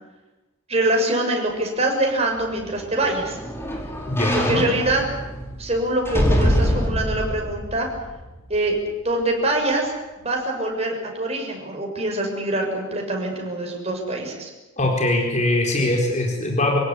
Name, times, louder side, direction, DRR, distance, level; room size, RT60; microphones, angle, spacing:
voice 1, 0.7-3.4 4.3-5.0 5.6-7.9 8.5-14.5, right 1 dB, 30° right, 1 dB, 6.5 m, -24 dB
sound 1, 2.4-8.8 9.2-9.3, equal, 10° left, 4.3 m, -25 dB
voice 2, 4.1-4.6 14.8-16.8, left 1 dB, 35° left, 0 dB, 4.4 m, -22 dB
27.0 x 17.0 x 9.9 m, 1.1 s
head